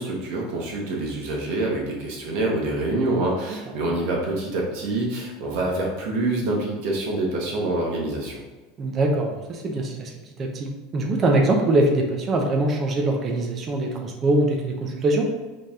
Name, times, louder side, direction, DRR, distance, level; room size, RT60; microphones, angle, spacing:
voice 1, 0.0-8.4, right 2 dB, 60° right, -2 dB, 1.4 m, -26 dB
voice 2, 8.8-10.1 10.4-15.3, right 2 dB, 25° right, 1 dB, 0.6 m, -23 dB
5.5 x 3.4 x 2.8 m, 1.2 s
supercardioid pair, 155°, 0 cm